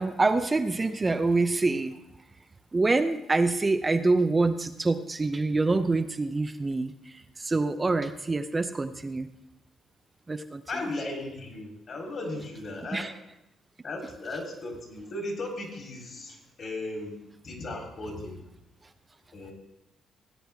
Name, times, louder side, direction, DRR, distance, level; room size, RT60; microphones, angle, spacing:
voice 1, 0.0-2.0 2.7-9.3 10.3-10.6 12.9-13.1, right 3 dB, 25° right, 8 dB, 0.6 m, -26 dB
voice 2, 10.7-13.1 13.8-17.1 17.4-18.4 19.3-19.5, left 2 dB, 50° left, 1 dB, 3.5 m, -36 dB
17.0 x 9.2 x 3.5 m, 0.84 s
cardioid pair, 90°, 0 cm